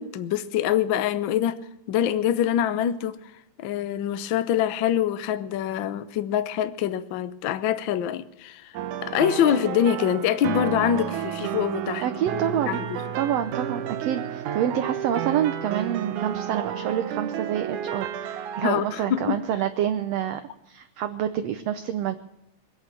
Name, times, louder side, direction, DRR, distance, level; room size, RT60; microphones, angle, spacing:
voice 1, 0.0-1.6 1.9-3.2 3.6-8.7 9.0-12.0 12.7-12.8 18.6-19.4, left 10 dB, 85° left, 1.0 m, -25 dB
sound 1, 8.7-19.7, right 9 dB, 85° right, 2.4 m, -32 dB
voice 2, 12.0-12.8 13.2-20.4 20.7-22.2, right 10 dB, 70° right, 1.7 m, -27 dB
21.5 x 8.7 x 7.5 m
omnidirectional pair, 3.4 m